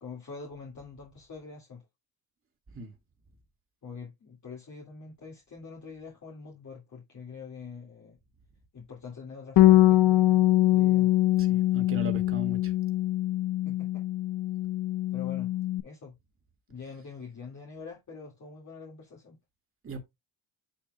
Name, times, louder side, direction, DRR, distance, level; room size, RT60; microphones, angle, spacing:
voice 1, 0.0-1.8 3.8-8.2 8.7-11.1 13.6-14.0 15.1-15.5 15.8-16.2 16.7-19.4, left 5 dB, 40° left, 2.1 m, -45 dB
Bass guitar, 9.6-15.8, left 15 dB, 70° left, 1.0 m, -23 dB
voice 2, 11.4-12.7 19.8-20.0, equal, 30° right, 2.1 m, -37 dB
9.8 x 5.9 x 2.2 m
cardioid pair, 135°, 44 cm